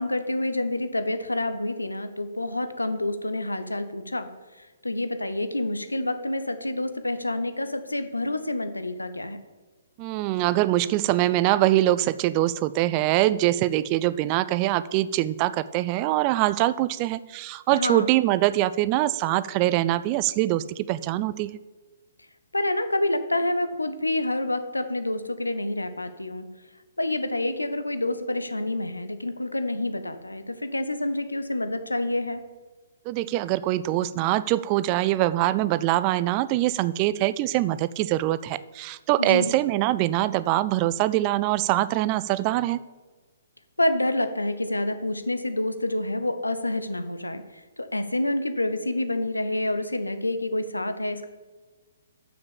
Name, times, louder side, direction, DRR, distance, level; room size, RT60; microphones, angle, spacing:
voice 1, 0.0-4.3 4.8-9.4 17.7-18.1 22.5-26.5 27.0-32.4 39.2-39.6 43.8-47.4 47.8-51.3, left 1 dB, 80° left, 10 dB, 0.8 m, -28 dB
voice 2, 10.0-21.5 33.1-42.8, right 15 dB, 30° right, 17 dB, 0.3 m, -23 dB
7.1 x 6.3 x 7.1 m, 1.3 s
figure-of-eight pair, 125°, 0 cm